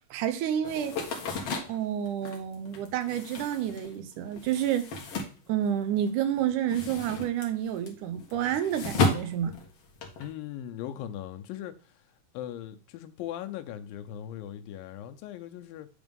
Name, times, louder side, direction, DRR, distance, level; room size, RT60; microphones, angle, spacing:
voice 1, 0.1-1.0 1.7-4.9 5.5-9.5, right 10 dB, 75° right, 2.1 m, -29 dB
sound 1, 0.6-6.1 6.4-10.3, left 3 dB, 55° left, 2.0 m, -33 dB
voice 2, 10.2-12.0 12.3-15.9, left 11 dB, 85° left, 2.5 m, -39 dB
8.8 x 3.6 x 5.3 m
omnidirectional pair, 4.0 m